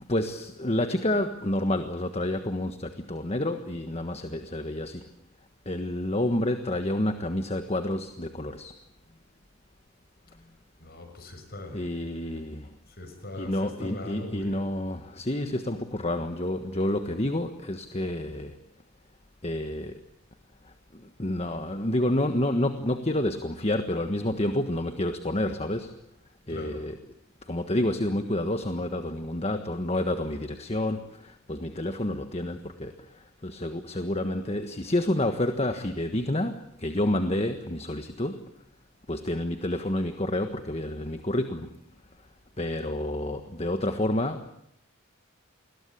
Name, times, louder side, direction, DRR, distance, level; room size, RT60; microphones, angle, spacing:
voice 1, 0.1-5.0 5.7-8.7 11.7-12.7 13.4-18.5 19.4-20.0 21.2-25.9 26.5-27.0 27.5-31.0 31.5-32.9 33.4-38.4 39.1-41.7 42.6-44.5, left 1 dB, 30° left, 8 dB, 1.4 m, -29 dB
voice 2, 10.8-11.8 13.0-14.6 26.5-26.8, left 1 dB, 45° left, 8 dB, 6.4 m, -40 dB
29.5 x 21.5 x 8.5 m, 0.74 s
head